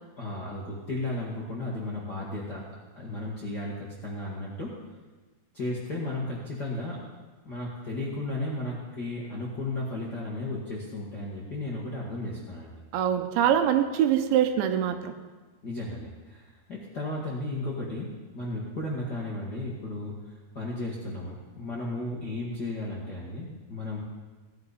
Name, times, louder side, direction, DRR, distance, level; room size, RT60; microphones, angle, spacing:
voice 1, 0.2-2.7 2.9-4.7 5.5-7.0 7.4-12.8 15.6-24.0, left 2 dB, 80° left, -6 dB, 0.9 m, -34 dB
voice 2, 12.9-15.1, right 9 dB, 85° right, 7 dB, 3.2 m, -24 dB
17.0 x 11.0 x 4.1 m, 1.3 s
omnidirectional pair, 5.1 m